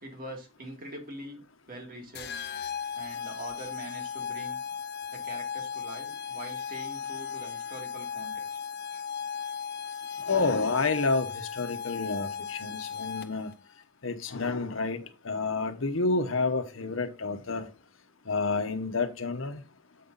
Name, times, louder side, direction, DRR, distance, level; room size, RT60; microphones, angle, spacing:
voice 1, 0.0-1.4 1.7-2.5 2.9-4.6 5.1-8.6 8.9-9.0, right 1 dB, 45° right, 2 dB, 2.3 m, -43 dB
sound 1, 2.2-13.5, left 7 dB, 55° left, 0.7 m, -36 dB
voice 2, 10.3-13.5 14.0-17.7 18.3-19.6, left 3 dB, 70° left, 7 dB, 1.1 m, -29 dB
7.7 x 5.5 x 4.0 m, 0.29 s
head